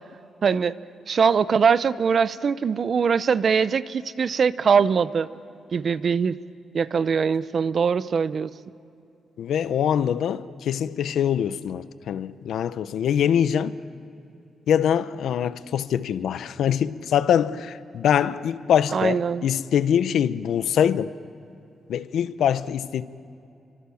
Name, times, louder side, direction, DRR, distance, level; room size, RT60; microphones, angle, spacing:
voice 1, 0.4-0.7 1.1-5.3 5.7-6.4 6.7-8.5 18.9-19.5, right 6 dB, 45° right, 0.7 m, -22 dB
voice 2, 9.4-13.8 14.7-21.2 21.9-23.0, left 9 dB, 80° left, 0.8 m, -23 dB
29.0 x 25.0 x 7.1 m
wide cardioid pair, 155°, 0 cm